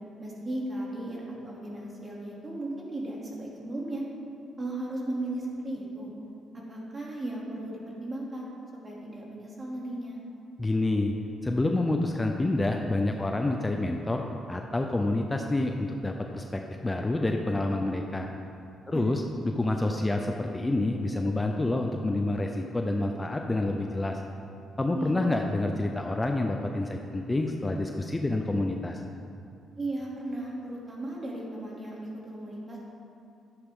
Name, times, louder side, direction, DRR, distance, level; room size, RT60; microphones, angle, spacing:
voice 1, 0.2-4.0 4.6-6.1 6.5-8.5 8.8-10.2 18.9-19.3 24.9-25.3 29.8-32.0 32.2-32.8, right 1 dB, 30° right, -4 dB, 2.9 m, -36 dB
voice 2, 10.6-11.1 11.4-18.3 18.9-24.2 24.8-29.0, left 2 dB, 20° left, 3 dB, 0.6 m, -28 dB
12.0 x 9.7 x 3.8 m, 2.5 s
cardioid pair, 90°, 0 cm